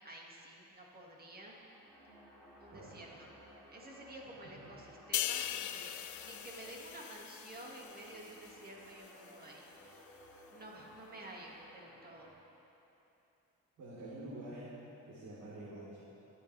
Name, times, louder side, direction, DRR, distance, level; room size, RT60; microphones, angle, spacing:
voice 1, 0.0-1.6 2.6-3.3 3.7-5.9 6.2-10.0 10.5-12.3, right 1 dB, 30° right, -2 dB, 2.1 m, -51 dB
sound 1, 1.2-12.3, equal, ahead, 3.0 m, -59 dB
sound 2, 5.1-8.7 9.0-9.3, left 12 dB, 65° left, 0.5 m, -40 dB
voice 2, 13.8-14.8 15.1-16.0, right 1 dB, 80° right, -10 dB, 3.3 m, -47 dB
23.5 x 8.2 x 3.4 m, 3.0 s
cardioid pair, 125°, 32 cm